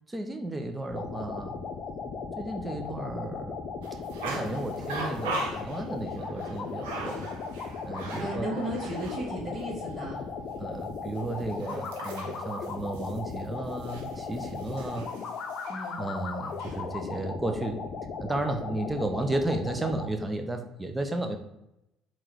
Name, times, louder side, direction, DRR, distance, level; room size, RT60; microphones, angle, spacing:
voice 1, 0.1-1.6 2.4-3.6 4.2-7.3 7.8-8.5 10.6-15.1 16.0-17.8 18.2-21.4, right 2 dB, 15° right, 5 dB, 0.6 m, -33 dB
sound 1, 0.9-20.1, left 5 dB, 50° left, 0.6 m, -37 dB
sound 2, 3.8-9.3 9.6-9.7 11.2-15.9 16.4-16.8, right 2 dB, 85° right, 1.0 m, -40 dB
voice 2, 8.2-10.2 15.7-16.0, right 1 dB, 40° right, -2 dB, 1.5 m, -34 dB
3.8 x 3.0 x 4.5 m, 0.87 s
supercardioid pair, 75°, 0 cm